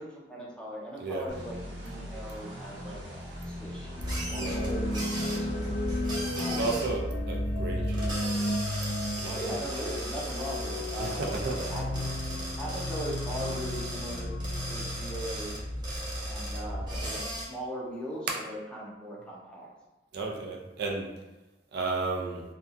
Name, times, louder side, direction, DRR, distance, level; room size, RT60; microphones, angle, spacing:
voice 1, 0.0-3.0 3.5-5.7 6.4-6.9 9.2-12.1 12.6-14.3 14.7-15.6 16.2-19.7, equal, 5° left, -4 dB, 0.5 m, -39 dB
sound 1, 1.3-6.8, equal, 90° right, 0.9 m, -40 dB
sound 2, 3.9-15.8, left 1 dB, 65° left, 0.3 m, -35 dB
sound 3, 4.0-17.4, equal, 25° right, 0.7 m, -35 dB
voice 2, 4.3-4.7 6.3-8.6 9.2-9.4 11.0-11.6 20.1-21.1 21.7-22.4, right 3 dB, 65° right, 0 dB, 0.4 m, -33 dB
2.7 x 2.3 x 2.4 m, 1.1 s
head